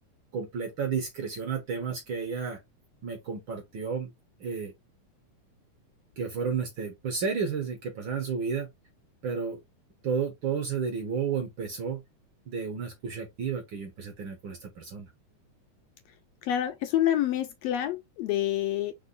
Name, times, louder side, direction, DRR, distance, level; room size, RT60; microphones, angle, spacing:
voice 1, 0.3-2.6 3.0-4.1 4.4-4.7 6.2-8.7 9.2-9.6 10.0-12.0 12.5-15.1, right 6 dB, 60° right, 1.4 m, -32 dB
voice 2, 16.4-18.9, left 12 dB, 75° left, 1.5 m, -27 dB
4.5 x 2.9 x 3.9 m
omnidirectional pair, 3.4 m